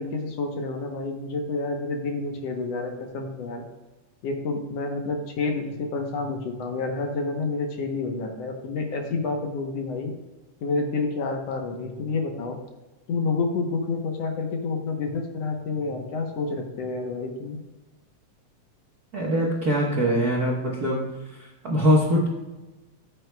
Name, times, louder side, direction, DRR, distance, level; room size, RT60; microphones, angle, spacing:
voice 1, 0.0-3.6 4.2-10.1 10.6-12.6 13.1-17.6, left 3 dB, 65° left, 3 dB, 2.0 m, -29 dB
voice 2, 19.1-21.0 21.4-22.3, equal, 55° right, -3 dB, 1.1 m, -22 dB
14.0 x 7.8 x 2.3 m, 1.1 s
omnidirectional pair, 3.3 m